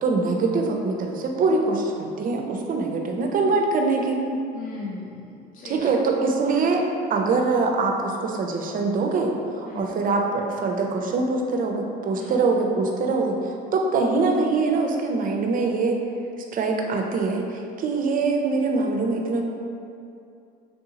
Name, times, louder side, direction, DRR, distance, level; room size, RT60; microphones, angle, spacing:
voice 1, 0.0-4.2 5.6-6.8 7.1-13.3 13.7-16.0 16.5-19.4, right 3 dB, 40° right, 2 dB, 0.5 m, -23 dB
voice 2, 4.5-5.9 9.6-10.0 12.2-12.4 13.0-13.1, left 3 dB, 40° left, -4 dB, 0.6 m, -37 dB
3.3 x 2.6 x 2.8 m, 2.5 s
supercardioid pair, 80°, 21 cm